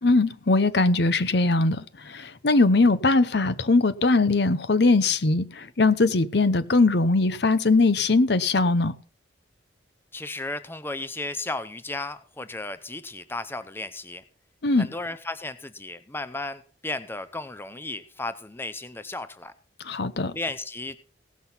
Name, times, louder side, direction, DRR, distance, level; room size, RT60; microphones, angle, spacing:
voice 1, 0.0-8.9 14.6-14.9 19.8-20.3, left 3 dB, 55° left, 0.8 m, -21 dB
voice 2, 10.1-14.2 14.8-19.5 20.3-21.0, left 2 dB, 10° left, 0.6 m, -34 dB
17.0 x 6.2 x 5.6 m
head